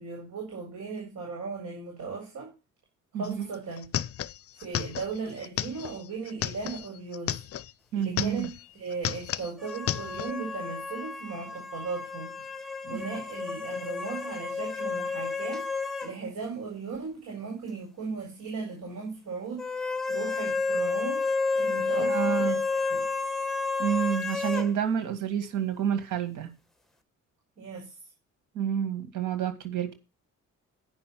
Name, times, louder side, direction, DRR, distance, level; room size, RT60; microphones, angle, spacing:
voice 1, 0.0-2.5 3.1-3.9 4.5-7.4 7.9-12.3 12.8-19.7 20.1-23.0 27.6-28.0, right 4 dB, 70° right, -1 dB, 4.8 m, -37 dB
voice 2, 3.1-3.5 7.9-8.5 12.9-13.0 22.0-22.6 23.8-26.5 28.5-29.9, right 8 dB, 85° right, 9 dB, 2.1 m, -29 dB
sound 1, 3.2-3.3 3.5-7.7 8.0-8.6 8.9-10.3, left 11 dB, 50° left, 0.6 m, -33 dB
sound 2, 9.6-16.1 16.4-16.5 19.6-24.7, left 4 dB, ahead, 1.6 m, -31 dB
9.6 x 5.6 x 7.6 m, 0.29 s
cardioid pair, 90°, 30 cm